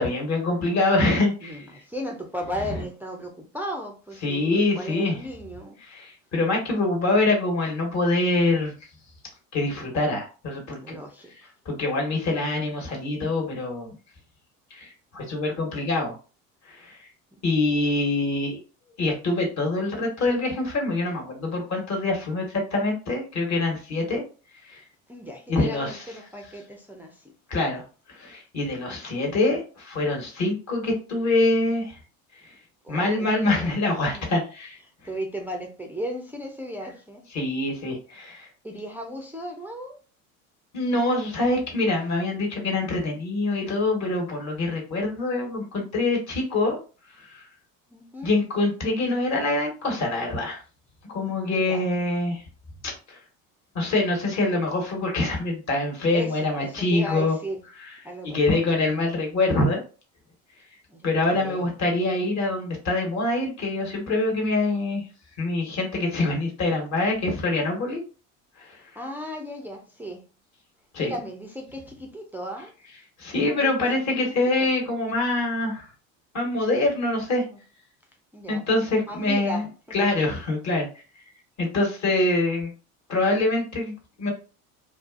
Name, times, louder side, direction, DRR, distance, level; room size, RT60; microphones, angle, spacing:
voice 1, 0.0-1.6 2.7-2.8 4.2-5.2 5.8-8.7 9.5-11.0 11.6-13.9 14.7-16.2 16.7-17.1 17.4-18.6 19.0-24.2 24.6-24.8 25.5-26.0 27.5-27.8 28.1-32.0 32.9-34.8 37.3-38.5 40.7-46.8 47.2-47.5 48.2-50.6 51.1-52.4 52.8-53.2 53.7-57.4 58.2-59.8 61.0-65.0 65.4-68.0 68.6-68.8 70.9-71.1 73.2-75.9 76.3-77.4 78.5-79.6 79.9-80.9 81.6-82.7 83.1-84.3, left 2 dB, 40° left, 1.2 m, -25 dB
voice 2, 1.4-5.8 10.8-11.5 17.3-17.4 17.8-18.0 25.1-27.3 32.8-33.7 34.0-34.3 35.1-37.3 38.6-40.0 47.9-48.3 51.5-51.9 56.1-57.6 58.0-58.6 60.9-61.7 68.9-70.3 71.0-72.7 73.5-74.3 74.6-74.7 77.4-77.6 78.3-78.7 78.9-79.7, equal, 5° right, 0.3 m, -36 dB
2.5 x 2.4 x 2.4 m
hypercardioid pair, 80°, 41 cm